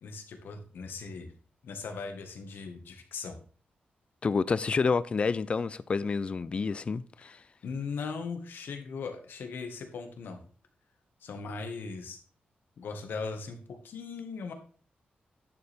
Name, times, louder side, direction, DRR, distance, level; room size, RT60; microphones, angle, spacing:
voice 1, 0.0-1.3 1.6-3.4 7.2-7.4 7.6-10.4 11.2-12.2 12.8-14.5, left 4 dB, 85° left, 1.8 m, -39 dB
voice 2, 4.2-7.4, left 4 dB, 35° left, 0.4 m, -29 dB
10.5 x 7.0 x 3.6 m
wide cardioid pair, 170°, 3 cm